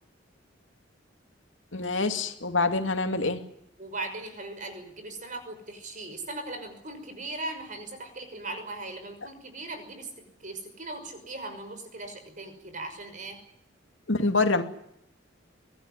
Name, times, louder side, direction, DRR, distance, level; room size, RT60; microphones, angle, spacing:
voice 1, 1.7-3.4 14.1-14.6, left 3 dB, 85° left, 7 dB, 2.5 m, -25 dB
voice 2, 3.8-13.4, right 2 dB, 45° right, 8 dB, 6.0 m, -39 dB
24.0 x 17.0 x 9.9 m, 0.77 s
head